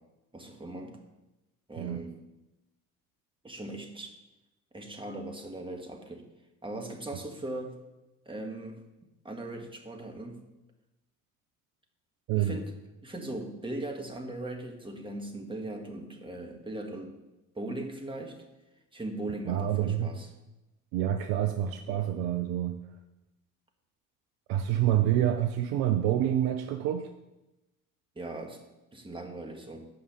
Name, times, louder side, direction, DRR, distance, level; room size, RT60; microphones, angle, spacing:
voice 1, 0.3-1.0 1.7-2.1 3.4-4.1 4.7-6.3 6.6-7.8 8.2-8.8 9.2-10.4 12.3-12.7 13.0-17.1 17.5-18.4 18.9-20.3 28.1-28.6 28.9-29.9, right 2 dB, 10° right, 3 dB, 1.7 m, -39 dB
voice 2, 19.5-20.1 20.9-22.8 24.5-27.1, right 11 dB, 55° right, 8 dB, 0.7 m, -27 dB
9.2 x 5.4 x 6.6 m, 0.99 s
figure-of-eight pair, 55°, 44 cm